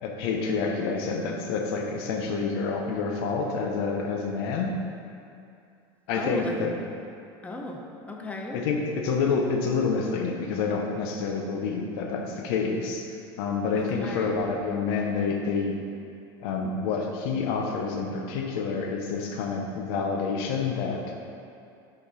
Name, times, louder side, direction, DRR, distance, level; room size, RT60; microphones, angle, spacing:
voice 1, 0.0-4.7 6.1-6.7 8.5-13.1 13.4-15.8 16.4-21.2, left 4 dB, 70° left, 1 dB, 0.9 m, -28 dB
voice 2, 6.1-6.7 7.4-8.6 13.7-14.4, left 2 dB, 10° left, 0 dB, 0.7 m, -36 dB
6.0 x 5.3 x 4.2 m, 2.5 s
supercardioid pair, 110°, 13 cm